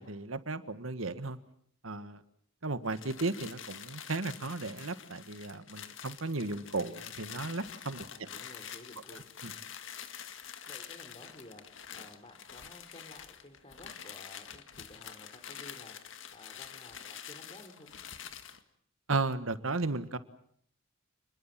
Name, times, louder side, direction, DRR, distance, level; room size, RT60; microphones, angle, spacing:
voice 1, 0.0-1.4 1.8-2.2 2.6-8.0 9.4-9.5 19.1-20.2, right 3 dB, 85° right, 12 dB, 1.6 m, -35 dB
sound 1, 2.8-18.6, left 8 dB, 65° left, 1.9 m, -47 dB
voice 2, 8.1-9.7 10.7-17.9, left 1 dB, 30° left, 4 dB, 3.5 m, -54 dB
29.0 x 21.0 x 7.5 m, 0.65 s
head